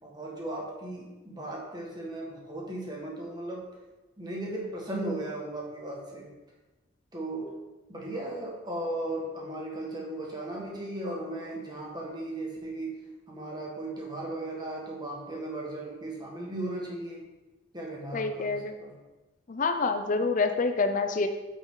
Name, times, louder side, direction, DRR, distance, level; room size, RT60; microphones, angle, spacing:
voice 1, 0.0-3.6 4.2-6.3 7.1-7.5 7.9-12.9 13.3-17.2 17.7-18.9, right 1 dB, 20° right, -2 dB, 1.6 m, -36 dB
voice 2, 18.1-18.7 19.5-21.3, left 4 dB, 40° left, 7 dB, 0.5 m, -27 dB
8.5 x 6.3 x 3.8 m, 1.1 s
head